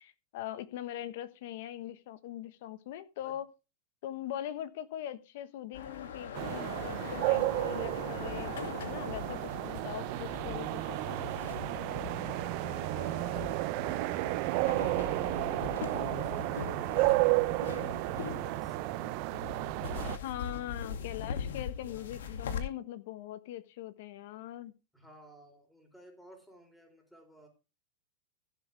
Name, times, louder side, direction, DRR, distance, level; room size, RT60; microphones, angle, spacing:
voice 1, 0.0-3.5 4.0-8.6 8.8-11.2 20.2-24.7, left 12 dB, 65° left, 1.3 m, -41 dB
sound 1, 5.7-22.6, left 7 dB, 85° left, 2.2 m, -41 dB
sound 2, 6.3-20.2, right 22 dB, 55° right, 0.5 m, -32 dB
voice 2, 21.8-22.2 24.9-27.5, right 1 dB, ahead, 4.1 m, -55 dB
15.0 x 7.7 x 3.4 m
supercardioid pair, 125°, 0 cm